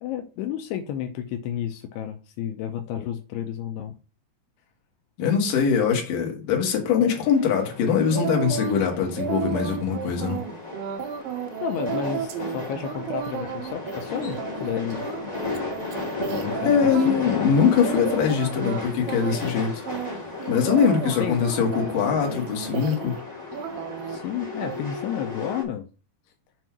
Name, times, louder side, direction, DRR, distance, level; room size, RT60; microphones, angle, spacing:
voice 1, 0.0-3.9 11.6-15.5 16.5-17.5 21.2-21.4 24.1-25.9, left 9 dB, 85° left, 2.6 m, -31 dB
voice 2, 5.2-10.4 16.6-19.9 20.5-23.2, left 7 dB, 60° left, 2.7 m, -22 dB
sound 1, 7.1-25.6, left 3 dB, 25° left, 0.8 m, -35 dB
Vocal Chops Female Dry, 8.1-8.8 9.2-17.1 17.5-18.8 19.1-19.6 19.9-23.2 23.5-24.2 24.6-24.8, right 7 dB, 85° right, 2.9 m, -32 dB
7.4 x 2.6 x 5.8 m
omnidirectional pair, 4.7 m